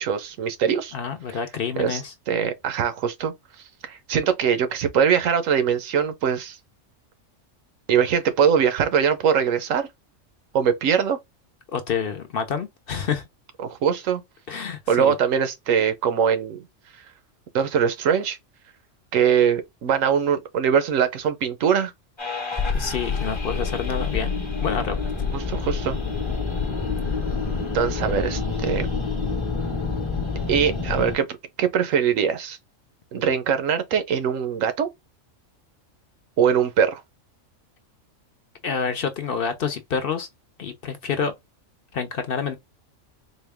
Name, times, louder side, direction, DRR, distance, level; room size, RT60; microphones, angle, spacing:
voice 1, 0.0-0.9 1.8-2.0 2.3-3.3 3.8-6.6 7.9-9.9 10.5-11.2 13.6-14.2 14.9-16.6 17.5-18.4 19.1-21.9 25.3-26.0 27.7-28.9 30.5-31.2 31.6-32.6 33.1-34.9 36.4-37.0, right 7 dB, 85° right, 1.1 m, -22 dB
voice 2, 0.9-2.1 11.7-13.2 14.5-15.2 22.7-24.3 24.6-25.1 38.6-40.3 40.6-41.3 41.9-42.5, left 6 dB, 55° left, 0.7 m, -28 dB
sound 1, 22.2-31.1, left 4 dB, 25° left, 0.8 m, -27 dB
4.1 x 2.3 x 3.4 m
omnidirectional pair, 1.3 m